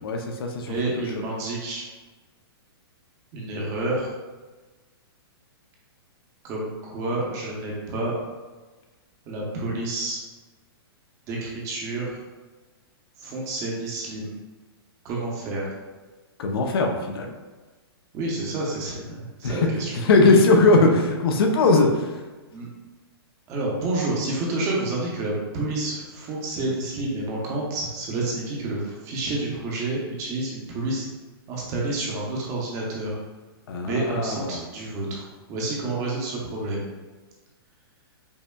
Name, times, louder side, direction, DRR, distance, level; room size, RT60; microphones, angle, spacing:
voice 1, 0.0-0.7 16.4-17.3 19.4-22.1 33.7-34.6, left 3 dB, 65° left, 3 dB, 0.5 m, -20 dB
voice 2, 0.7-1.8 3.3-4.1 6.4-8.1 9.3-10.2 11.3-12.1 13.2-14.3 15.0-15.7 18.1-20.0 22.5-22.7 23.5-31.1 31.5-33.1 33.8-35.2 35.5-36.9, right 2 dB, 25° right, -3 dB, 0.7 m, -29 dB
5.4 x 2.2 x 2.2 m, 1.3 s
hypercardioid pair, 160°, 13 cm